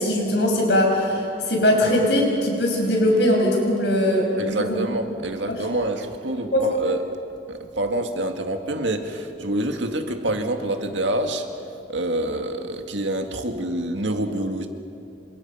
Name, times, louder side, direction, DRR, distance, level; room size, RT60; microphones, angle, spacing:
voice 1, 0.0-4.8 5.6-5.7 6.5-6.6, left 1 dB, 65° left, 0 dB, 5.9 m, -20 dB
voice 2, 4.4-7.0 7.5-11.5 11.9-14.7, right 1 dB, 80° right, 5 dB, 2.0 m, -26 dB
28.0 x 26.0 x 5.7 m, 2.8 s
head